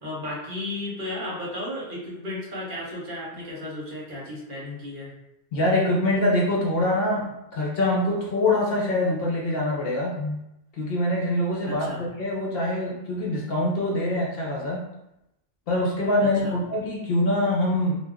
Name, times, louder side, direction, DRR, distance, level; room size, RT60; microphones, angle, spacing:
voice 1, 0.0-5.1 11.6-12.0 16.2-16.6, left 1 dB, 50° right, -5 dB, 0.9 m, -34 dB
voice 2, 5.5-10.4 10.8-14.8 15.7-18.0, left 1 dB, 60° left, -3 dB, 0.8 m, -24 dB
2.4 x 2.2 x 3.4 m, 0.87 s
omnidirectional pair, 1.2 m